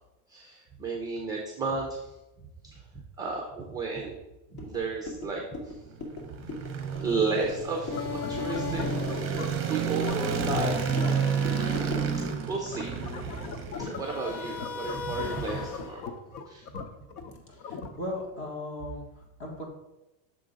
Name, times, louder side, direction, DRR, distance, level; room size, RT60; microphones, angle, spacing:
voice 1, 0.3-1.9 2.7-2.8 3.2-4.2 4.5-5.4 7.0-11.2 11.7-13.5 13.8-16.0 16.5-16.6, right 4 dB, 10° right, -1 dB, 0.5 m, -33 dB
sound 1, 4.6-12.2, left 2 dB, 55° left, 2.1 m, -41 dB
sound 2, 6.0-14.4, right 6 dB, 30° right, 0.9 m, -31 dB
sound 3, 7.9-18.3, left 5 dB, 85° left, 0.9 m, -37 dB
voice 2, 17.5-19.7, left 1 dB, 25° left, -1 dB, 1.5 m, -37 dB
6.9 x 3.7 x 5.1 m, 0.95 s
cardioid pair, 165°, 44 cm